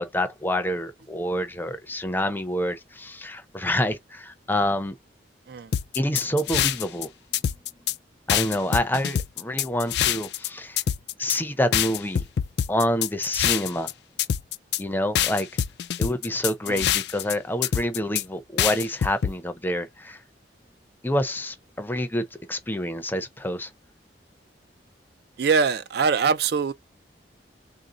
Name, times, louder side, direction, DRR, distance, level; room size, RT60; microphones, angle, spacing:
voice 1, 0.0-4.9 5.9-7.1 8.3-10.8 11.2-12.2 12.7-13.9 14.8-15.5 16.0-20.2 21.0-23.7, left 1 dB, 10° left, 0.5 m, -27 dB
sound 1, 5.7-7.0 7.3-7.9 8.3-10.5 10.8-11.4 11.7-13.9 14.2-14.8 15.1-17.3 17.6-18.2 18.6-19.3, left 10 dB, 60° left, 0.3 m, -25 dB
voice 2, 25.4-26.7, right 5 dB, 60° right, 0.4 m, -22 dB
3.6 x 2.6 x 3.7 m
head